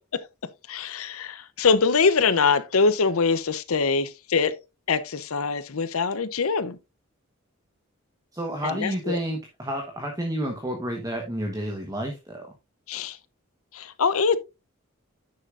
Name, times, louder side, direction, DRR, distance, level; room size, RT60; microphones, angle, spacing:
voice 1, 0.7-4.6 4.9-6.8 8.6-9.2 12.9-13.2 13.7-14.4, left 5 dB, 85° left, 0.8 m, -23 dB
voice 2, 8.3-12.5, right 1 dB, 15° right, 1.1 m, -30 dB
9.6 x 6.6 x 2.5 m
head